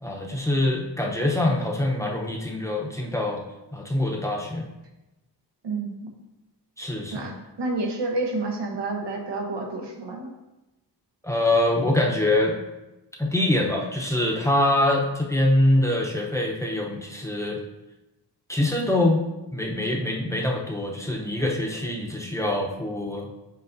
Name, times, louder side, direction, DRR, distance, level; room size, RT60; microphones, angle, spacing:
voice 1, 0.0-3.4 3.7-4.7 6.8-7.3 11.2-12.6 13.2-17.6 18.5-19.2 19.5-23.3, left 1 dB, 5° left, -1 dB, 0.7 m, -24 dB
voice 2, 5.6-6.1 7.1-10.3, right 2 dB, 85° right, 1 dB, 1.1 m, -29 dB
8.1 x 4.6 x 2.6 m, 1.0 s
wide cardioid pair, 120°, 41 cm